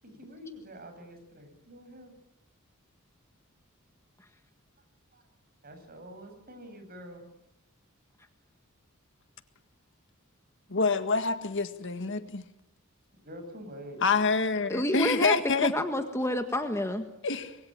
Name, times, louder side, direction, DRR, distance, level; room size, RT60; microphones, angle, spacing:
voice 1, 0.0-2.1 5.1-5.2 5.6-7.3 13.2-14.0 14.8-14.9, equal, 45° right, 6 dB, 7.3 m, -46 dB
voice 2, 10.7-12.4 14.0-15.7 17.2-17.6, left 4 dB, 60° left, 9 dB, 1.8 m, -27 dB
voice 3, 14.7-15.3 15.6-17.0, left 1 dB, 15° left, 6 dB, 1.7 m, -28 dB
26.0 x 22.5 x 8.9 m, 0.80 s
head